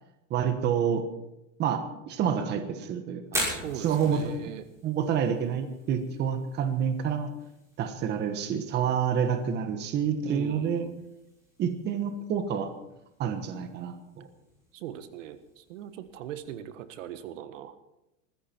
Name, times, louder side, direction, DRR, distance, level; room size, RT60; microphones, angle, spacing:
voice 1, 0.3-1.0 1.6-3.4 3.8-4.2 4.8-7.3 7.8-10.9 11.6-12.7 13.2-14.3, right 7 dB, 25° right, 8 dB, 1.4 m, -28 dB
Fire, 3.2-17.1, equal, 5° right, 6.2 m, -43 dB
voice 2, 3.5-4.6 10.2-11.0 14.7-17.8, right 10 dB, 70° right, 11 dB, 1.5 m, -40 dB
20.5 x 15.0 x 4.5 m, 0.90 s
supercardioid pair, 160°, 39 cm